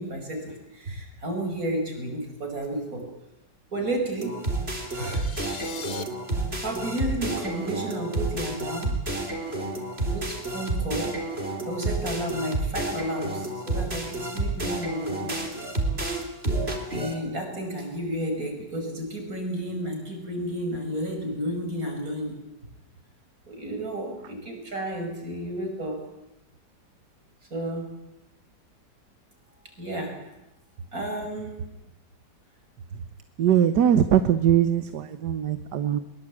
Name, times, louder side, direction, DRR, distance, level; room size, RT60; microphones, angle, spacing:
voice 1, 0.0-3.1 3.7-4.4 4.8-5.3 5.6-6.1 6.6-9.0 10.0-11.2 11.6-15.5 16.9-22.4 23.5-26.0 27.5-28.0 29.8-30.2 30.9-31.6, right 1 dB, 50° right, 4 dB, 6.3 m, -32 dB
sound 1, 4.2-17.1, right 2 dB, 35° right, 4.2 m, -30 dB
sound 2, 4.8-6.0, left 6 dB, 65° left, 2.0 m, -39 dB
voice 2, 33.4-36.0, right 9 dB, 70° right, 11 dB, 1.7 m, -21 dB
22.5 x 22.5 x 8.7 m, 0.91 s
omnidirectional pair, 1.9 m